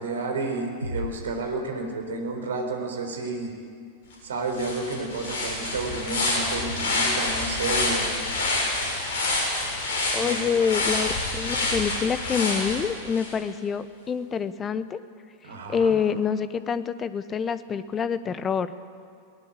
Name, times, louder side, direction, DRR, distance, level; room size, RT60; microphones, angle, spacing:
voice 1, 0.0-3.5 4.3-8.1 10.2-10.4 15.4-15.9, right 3 dB, 65° right, 4 dB, 4.1 m, -31 dB
sound 1, 0.8-2.5, left 1 dB, 90° left, 1.2 m, -37 dB
sound 2, 4.1-4.2 4.5-13.3, left 2 dB, 55° left, 7.2 m, -27 dB
voice 2, 10.1-15.0 15.7-18.7, left 6 dB, 25° left, 14 dB, 1.0 m, -26 dB
21.5 x 18.5 x 8.6 m, 2.1 s
figure-of-eight pair, 90°, 0 cm